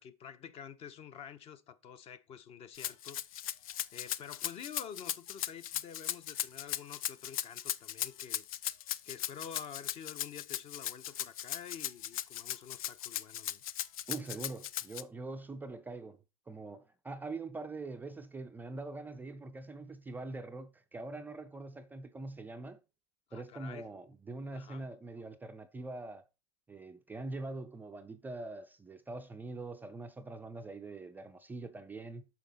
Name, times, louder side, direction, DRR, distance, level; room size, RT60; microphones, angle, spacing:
voice 1, 0.0-3.5 3.9-8.4 9.0-13.6 23.3-23.9 24.5-24.8, left 8 dB, 35° left, 0.7 m, -49 dB
Rattle (instrument), 2.7-15.0, left 12 dB, 75° left, 0.5 m, -37 dB
voice 2, 14.1-16.2 16.5-22.8 23.3-26.2 26.7-32.2, right 3 dB, 10° right, 0.4 m, -43 dB
6.2 x 5.9 x 4.0 m
hypercardioid pair, 115°, 18 cm